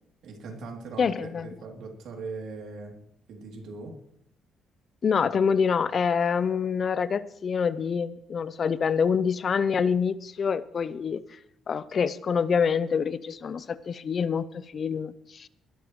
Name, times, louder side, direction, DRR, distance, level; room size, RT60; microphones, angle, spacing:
voice 1, 0.2-3.0 3.3-3.9, right 3 dB, 80° right, 1 dB, 3.0 m, -40 dB
voice 2, 1.0-1.5 5.0-11.4 11.7-15.5, left 6 dB, 50° left, 17 dB, 0.6 m, -26 dB
20.0 x 12.5 x 3.2 m, 0.74 s
cardioid pair, 90°, 0 cm